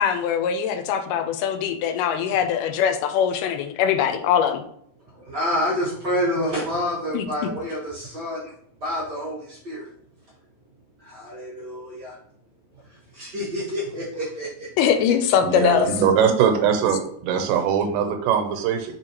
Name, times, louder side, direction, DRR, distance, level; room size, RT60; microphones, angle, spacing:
voice 1, 0.0-4.6 7.1-7.3 14.8-15.9, left 8 dB, 85° left, 8 dB, 2.1 m, -22 dB
voice 2, 5.1-8.5 8.8-9.9 11.0-12.1 12.8-14.7 15.6-15.7, equal, 70° right, -6 dB, 0.9 m, -28 dB
voice 3, 15.4-19.0, right 7 dB, 85° right, 5 dB, 2.3 m, -21 dB
4.7 x 3.8 x 2.9 m, 0.65 s
omnidirectional pair, 3.7 m